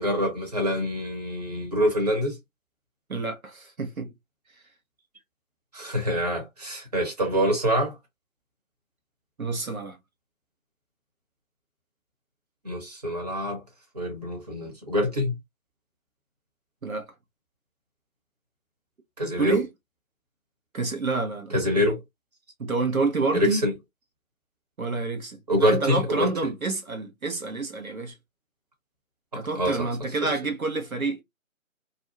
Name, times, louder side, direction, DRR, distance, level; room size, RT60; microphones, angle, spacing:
voice 1, 0.0-2.4 5.7-8.0 12.6-13.6 13.9-15.4 19.2-19.6 21.5-22.0 23.3-23.7 25.5-26.3 29.3-29.9 30.2-30.3, equal, 30° right, 1.0 m, -25 dB
voice 2, 3.1-4.1 9.4-10.0 16.8-17.1 19.4-19.7 20.7-21.5 22.6-23.6 24.8-28.2 29.3-31.2, right 3 dB, 80° right, 1.0 m, -28 dB
2.7 x 2.2 x 2.6 m
figure-of-eight pair, 155°, 41 cm